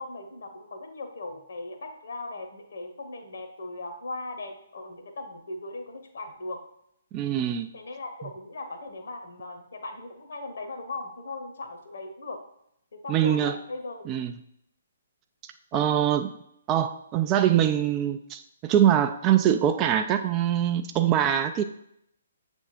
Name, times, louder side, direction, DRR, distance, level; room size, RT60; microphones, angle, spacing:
voice 1, 0.0-6.6 7.7-12.4 12.9-14.0 15.7-16.2, left 2 dB, 55° left, 5 dB, 1.1 m, -38 dB
voice 2, 7.1-7.7 13.1-13.6 14.1-14.3 15.7-16.3 16.7-21.6, right 10 dB, 20° right, 8 dB, 0.3 m, -23 dB
7.3 x 3.5 x 4.3 m, 0.75 s
figure-of-eight pair, 130°, 0 cm